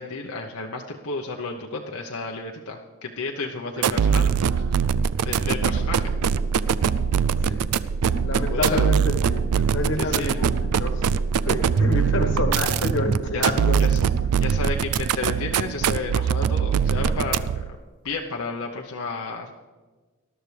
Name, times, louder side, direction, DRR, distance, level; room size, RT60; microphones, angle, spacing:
voice 1, 0.0-4.6 5.2-6.1 8.3-8.9 10.0-10.4 13.3-14.0 14.4-17.6 18.0-19.5, left 3 dB, 80° left, 1 dB, 0.9 m, -32 dB
sound 1, 3.8-17.7, right 6 dB, 90° right, 0.4 m, -22 dB
voice 2, 8.1-11.1 11.4-13.8, left 2 dB, 55° left, 5 dB, 1.3 m, -28 dB
19.5 x 12.0 x 3.3 m, 1.3 s
head